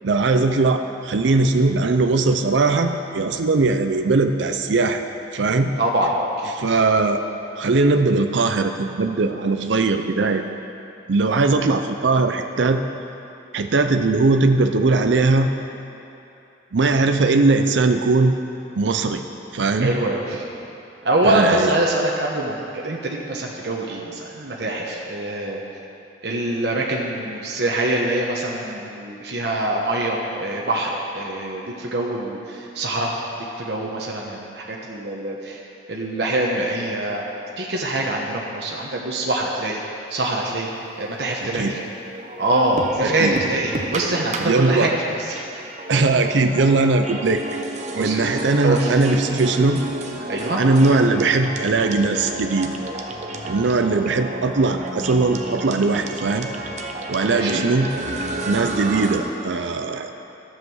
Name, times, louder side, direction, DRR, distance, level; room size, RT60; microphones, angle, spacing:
voice 1, 0.0-5.0 5.3-5.7 6.5-7.2 7.6-10.4 11.1-12.8 13.5-15.5 16.7-18.4 18.8-19.2 19.5-19.9 21.2-21.7 41.4-41.7 43.0-43.3 44.4-44.9 45.9-47.4 48.0-49.8 50.6-52.7 53.5-56.5 57.1-57.9 58.5-60.1, right 3 dB, 75° right, 6 dB, 0.6 m, -19 dB
voice 2, 5.8-6.1 6.4-6.8 19.8-20.4 21.0-25.6 26.2-33.2 33.6-35.6 35.9-37.2 37.6-39.8 40.1-40.7 41.0-41.8 42.4-45.0 48.0-48.3 48.6-49.0 50.3-50.6 57.2-57.7, right 1 dB, 60° right, -2 dB, 1.1 m, -24 dB
sound 1, 40.1-41.4 41.9-59.2, right 2 dB, 40° right, 0.8 m, -31 dB
12.0 x 7.6 x 6.2 m, 2.8 s
head